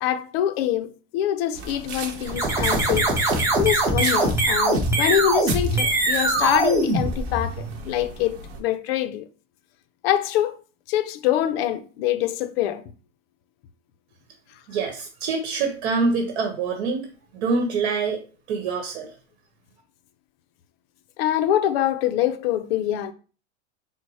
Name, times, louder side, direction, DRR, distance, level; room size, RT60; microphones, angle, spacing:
voice 1, 0.0-3.1 3.6-9.3 10.0-10.6 10.9-12.8 21.2-23.1, left 11 dB, 60° left, 0.5 m, -24 dB
sound 1, 1.5-8.6, right 3 dB, 45° right, 1.0 m, -37 dB
sound 2, 2.3-7.7, right 2 dB, 10° right, 0.7 m, -22 dB
voice 2, 14.7-17.1 17.3-18.2 18.5-19.1, right 4 dB, 65° right, 1.0 m, -25 dB
4.5 x 2.1 x 4.1 m
supercardioid pair, 155°, 34 cm